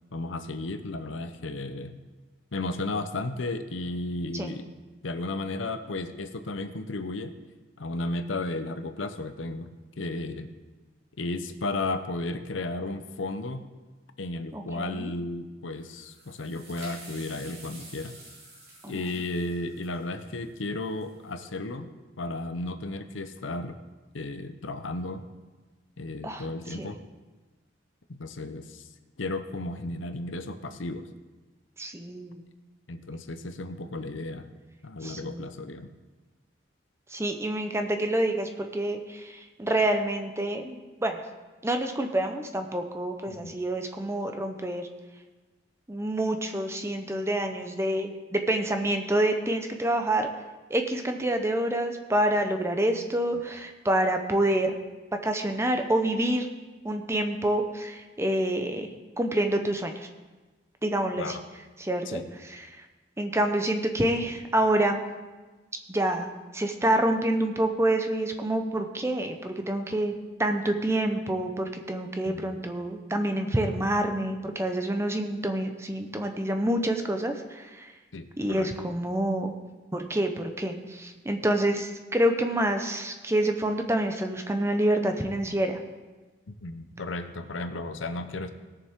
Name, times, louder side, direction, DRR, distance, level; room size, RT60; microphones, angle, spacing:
voice 1, 0.1-2.0 2.5-4.7 5.0-7.3 7.8-9.7 10.0-10.5 11.2-13.6 14.2-18.2 18.9-21.9 22.2-23.8 24.1-25.2 26.0-27.0 28.1-28.9 29.2-31.0 32.9-34.5 34.8-35.9 43.3-43.5 61.2-61.4 62.1-62.3 72.2-72.5 78.1-78.7 86.5-88.5, left 2 dB, 80° left, 9 dB, 0.8 m, -34 dB
voice 2, 14.5-15.1 18.8-19.0 26.2-26.4 26.8-26.9 31.8-32.4 35.0-35.4 37.1-41.2 41.6-44.9 45.9-50.3 50.7-54.8 55.1-56.5 56.8-58.9 59.2-60.1 60.8-61.4 61.8-62.2 62.5-62.8 63.2-65.0 65.9-70.1 70.4-77.9 78.4-79.5 79.9-85.8, right 1 dB, 15° right, 5 dB, 0.7 m, -27 dB
sound 1, 15.8-21.3, right 2 dB, 55° right, 4.1 m, -49 dB
19.0 x 6.9 x 3.6 m, 1.2 s
head